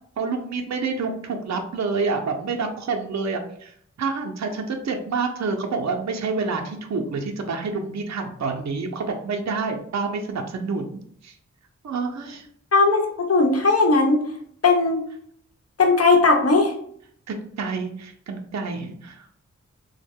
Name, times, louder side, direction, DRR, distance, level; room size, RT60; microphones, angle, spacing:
voice 1, 0.2-3.7 4.0-11.3 11.8-12.5 17.3-19.4, right 4 dB, 65° right, 3 dB, 0.6 m, -28 dB
voice 2, 12.7-14.2 14.6-15.1 15.8-16.7, left 3 dB, 55° left, 2 dB, 0.8 m, -18 dB
3.3 x 2.1 x 3.5 m, 0.64 s
cardioid pair, 45°, 30 cm